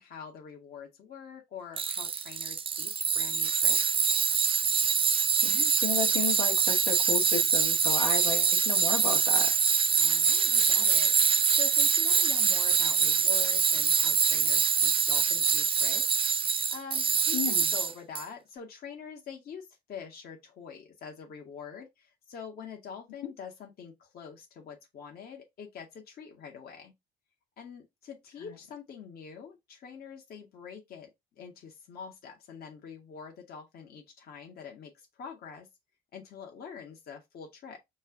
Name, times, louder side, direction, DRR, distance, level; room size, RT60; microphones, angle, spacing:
voice 1, 0.0-3.8 10.0-26.9 27.6-31.1 31.4-35.7 36.1-37.8, left 7 dB, 45° left, 1.1 m, -45 dB
Tools, 1.8-18.2, right 7 dB, 25° right, 0.5 m, -25 dB
voice 2, 5.4-9.5 17.3-17.7, left 8 dB, 75° left, 1.4 m, -33 dB
5.4 x 2.4 x 3.6 m
hypercardioid pair, 60°, 21 cm